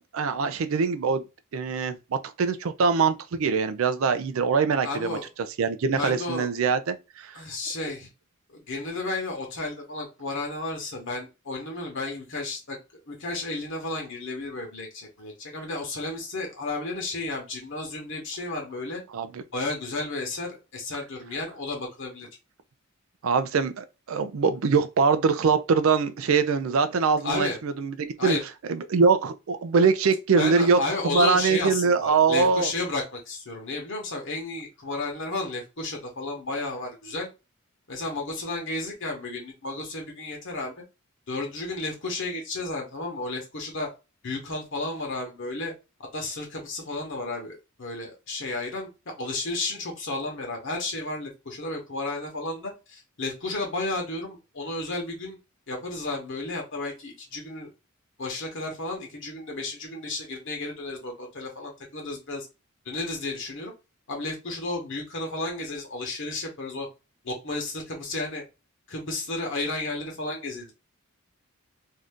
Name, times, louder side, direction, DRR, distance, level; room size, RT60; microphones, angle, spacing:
voice 1, 0.1-1.2 1.5-5.2 5.6-7.4 19.1-19.4 23.2-27.9 28.2-28.4 28.7-32.7, right 5 dB, 65° right, 0.4 m, -23 dB
voice 2, 4.8-5.3 5.9-6.5 7.3-8.1 8.5-12.8 13.1-19.0 19.5-22.3 27.2-27.6 28.2-28.4 30.3-37.3 37.9-40.7 41.3-43.9 44.2-45.7 46.0-48.9 49.2-55.4 55.7-57.7 58.2-62.5 62.8-63.7 64.1-66.9 67.2-68.4 68.9-70.7, left 2 dB, 60° left, 1.0 m, -32 dB
2.7 x 2.5 x 3.4 m
head